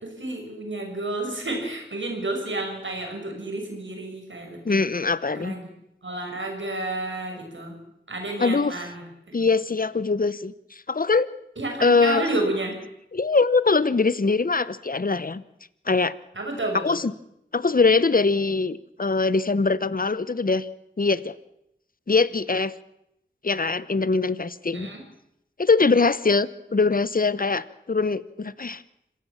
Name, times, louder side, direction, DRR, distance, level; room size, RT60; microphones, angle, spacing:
voice 1, 0.0-4.8 5.3-5.7 6.0-7.8 8.1-9.4 11.6-12.8 16.3-17.0 24.7-25.0, right 2 dB, 70° right, 2 dB, 6.6 m, -31 dB
voice 2, 4.6-5.5 8.4-8.7 9.3-10.5 10.9-11.3 11.8-12.2 13.1-15.4 15.9-16.1 16.7-17.1 17.5-20.7 21.0-21.3 22.1-22.7 23.4-24.9 25.6-28.8, left 4 dB, 45° left, 16 dB, 1.0 m, -22 dB
26.0 x 17.0 x 7.3 m, 0.81 s
wide cardioid pair, 50°, 20 cm